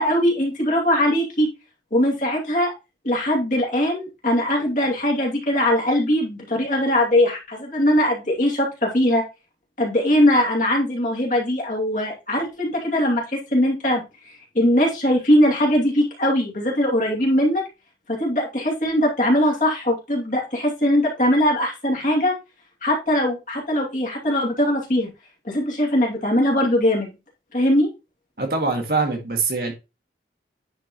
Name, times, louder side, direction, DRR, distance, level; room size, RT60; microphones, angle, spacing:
voice 1, 0.0-1.5 1.9-2.7 3.0-9.2 9.8-14.0 14.5-17.6 18.1-22.3 22.8-25.1 25.4-27.1 27.5-27.9, left 1 dB, 45° left, 2.5 m, -20 dB
voice 2, 28.4-29.7, right 3 dB, 55° right, 1.8 m, -23 dB
9.7 x 4.5 x 3.0 m
head